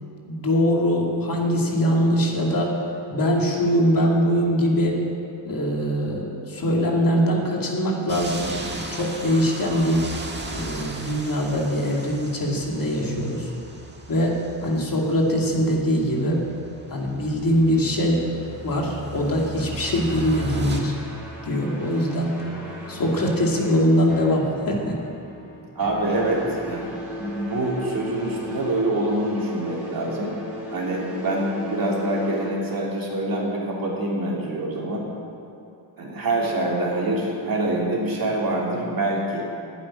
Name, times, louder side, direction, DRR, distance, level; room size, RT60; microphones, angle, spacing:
voice 1, 0.2-2.8 3.1-5.0 5.4-10.0 10.5-13.5 14.1-14.4 14.6-16.4 16.9-18.2 18.6-20.9 21.4-22.4 22.9-25.0, equal, 50° left, -1 dB, 2.5 m, -22 dB
sound 1, 8.1-20.8, right 3 dB, 25° right, 1.5 m, -37 dB
sound 2, 19.7-24.6 24.9-25.2 25.8-32.9, equal, 5° right, 4.3 m, -37 dB
sound 3, 22.4-29.2, right 1 dB, 20° left, 3.3 m, -42 dB
voice 2, 25.7-26.9 27.2-30.3 30.7-35.1 36.0-39.4, right 1 dB, 50° right, -3 dB, 3.1 m, -25 dB
12.0 x 8.8 x 10.0 m, 2.6 s
wide cardioid pair, 125°, 44 cm